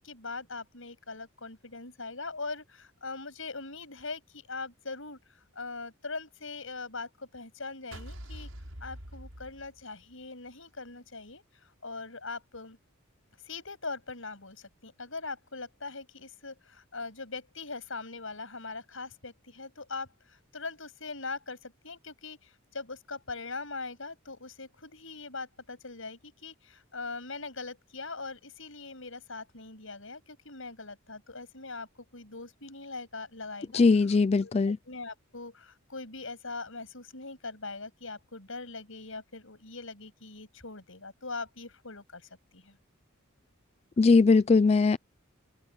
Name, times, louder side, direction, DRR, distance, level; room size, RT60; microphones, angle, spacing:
voice 1, 0.0-5.2 5.6-8.5 8.8-12.8 13.4-33.8 34.4-34.5 34.9-42.8, left 3 dB, 65° left, 7.6 m, -41 dB
sound 1, 7.9-10.2, right 1 dB, 80° right, 6.8 m, -44 dB
voice 2, 33.7-34.8 44.0-45.0, left 4 dB, 30° left, 0.3 m, -21 dB
head